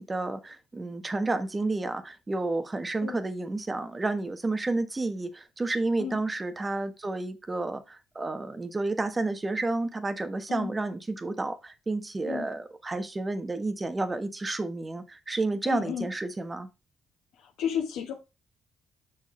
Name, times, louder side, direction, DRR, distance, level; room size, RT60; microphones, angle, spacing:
voice 1, 0.0-16.7, right 2 dB, 25° right, 1.3 m, -31 dB
voice 2, 15.6-16.1 17.4-18.1, left 8 dB, 90° left, 1.5 m, -33 dB
6.4 x 6.1 x 3.3 m
cardioid pair, 90°, 0 cm